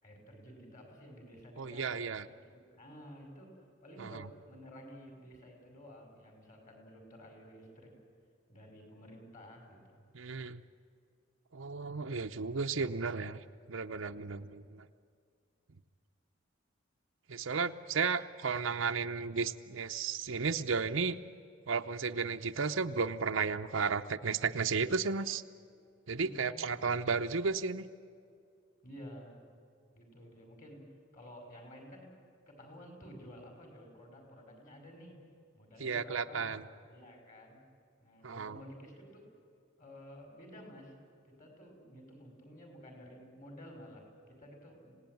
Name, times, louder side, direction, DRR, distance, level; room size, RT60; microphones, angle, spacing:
voice 1, 0.0-7.9 8.5-10.1 17.7-18.1 26.1-27.0 28.8-29.5 29.9-32.1 32.5-35.2 35.5-36.6 36.9-37.6 38.0-39.2 39.8-41.0 41.2-45.0, equal, 40° left, 3 dB, 5.5 m, -52 dB
voice 2, 1.6-2.3 4.0-4.1 10.1-10.6 11.5-13.4 13.7-14.8 17.3-21.2 21.7-25.4 26.1-27.8 35.8-36.6 38.2-38.6, right 5 dB, 75° right, 7 dB, 0.8 m, -33 dB
26.0 x 18.0 x 9.3 m, 2.3 s
head